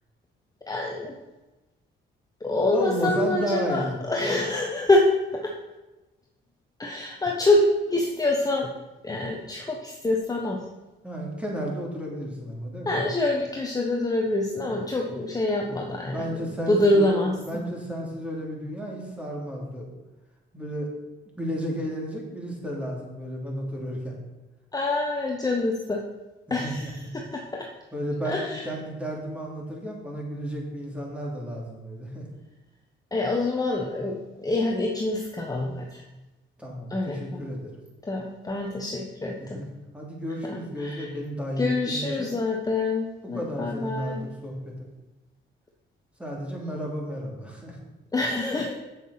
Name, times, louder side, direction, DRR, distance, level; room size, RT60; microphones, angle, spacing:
voice 1, 0.7-1.1 2.4-5.1 5.4-5.5 6.8-8.7 9.0-10.6 12.8-17.6 24.7-26.0 26.5-27.7 28.2-28.6 33.1-36.0 36.9-37.4 38.0-39.6 40.8-41.1 41.6-44.2 48.1-48.7, left 2 dB, 20° left, 0 dB, 1.2 m, -26 dB
voice 2, 2.6-4.0 4.3-4.4 11.0-13.0 14.6-14.7 15.9-19.9 20.5-20.9 21.4-24.1 26.5-27.1 27.9-32.3 36.6-37.7 39.3-39.7 39.9-42.3 43.2-44.9 46.2-47.8, equal, 5° right, -2 dB, 3.2 m, -33 dB
7.8 x 7.1 x 5.9 m, 1.1 s
cardioid pair, 90°, 20 cm